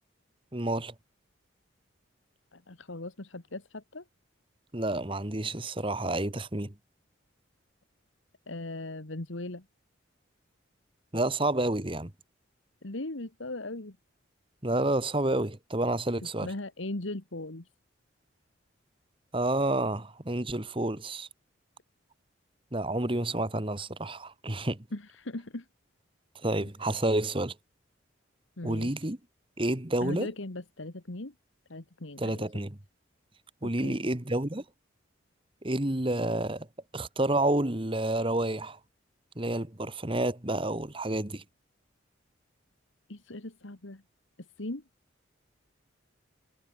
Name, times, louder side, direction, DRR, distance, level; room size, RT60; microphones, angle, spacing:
voice 1, 0.5-0.9 4.7-6.7 11.1-12.1 14.6-16.5 19.3-21.3 22.7-24.8 26.4-27.5 28.6-29.2 29.6-30.3 32.2-32.8 33.6-34.6 35.6-36.7 36.9-38.8 39.3-41.4, right 1 dB, 25° right, 1.6 m, -29 dB
voice 2, 2.5-4.0 8.5-9.6 12.8-14.0 16.2-17.7 24.9-25.7 28.6-29.1 30.0-31.3 31.7-32.5 33.6-34.0 43.1-44.0 44.6-44.8, left 2 dB, 75° left, 1.8 m, -39 dB
head